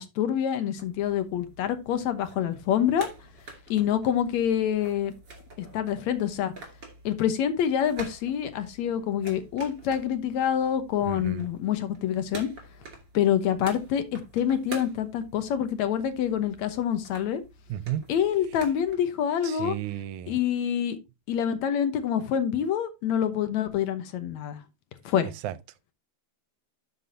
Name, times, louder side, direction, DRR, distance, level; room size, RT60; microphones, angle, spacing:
voice 1, 0.0-3.1 3.7-5.1 5.6-6.5 7.0-12.5 13.1-17.4 18.1-19.8 20.3-21.0 21.3-24.6 25.1-25.3, left 9 dB, 75° left, 2.3 m, -26 dB
sound 1, 0.8-18.9, right 3 dB, 40° right, 3.0 m, -47 dB
voice 2, 11.1-11.5 17.7-18.0 19.4-20.4 25.4-25.5, right 12 dB, 90° right, 2.0 m, -33 dB
12.0 x 6.0 x 2.7 m
omnidirectional pair, 3.4 m